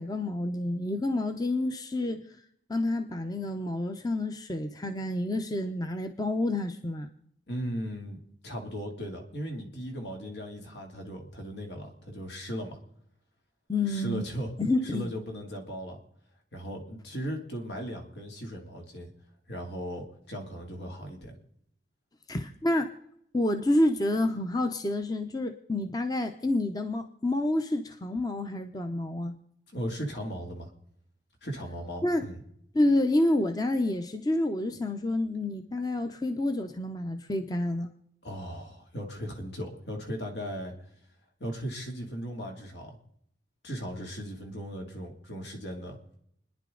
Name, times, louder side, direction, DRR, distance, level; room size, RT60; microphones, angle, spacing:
voice 1, 0.0-2.2 2.7-7.1 13.7-14.2 14.6-15.1 22.3-22.9 23.3-29.4 32.0-32.3 32.7-37.9, left 1 dB, 20° left, 7 dB, 0.7 m, -28 dB
voice 2, 7.5-8.2 8.4-12.8 13.9-14.5 14.8-16.0 16.5-19.1 19.5-21.3 29.7-30.7 31.4-32.4 38.2-40.7 41.4-43.0 43.6-46.0, equal, 75° left, 2 dB, 2.7 m, -37 dB
28.5 x 10.5 x 3.9 m, 0.72 s
head